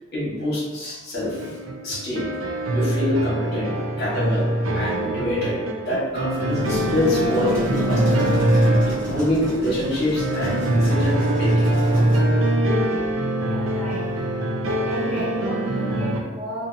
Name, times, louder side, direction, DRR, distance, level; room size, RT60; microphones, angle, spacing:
voice 1, 0.1-1.4 1.8-2.3 2.7-5.6 5.9-11.7, left 1 dB, 55° left, -6 dB, 1.1 m, -26 dB
sound 1, 1.2-16.2, right 1 dB, 75° right, 0.4 m, -23 dB
sound 2, 6.6-12.2, equal, 45° right, 1.3 m, -33 dB
voice 2, 13.3-14.0 14.6-16.7, right 1 dB, ahead, -10 dB, 0.8 m, -34 dB
2.6 x 2.5 x 2.5 m, 1.3 s
head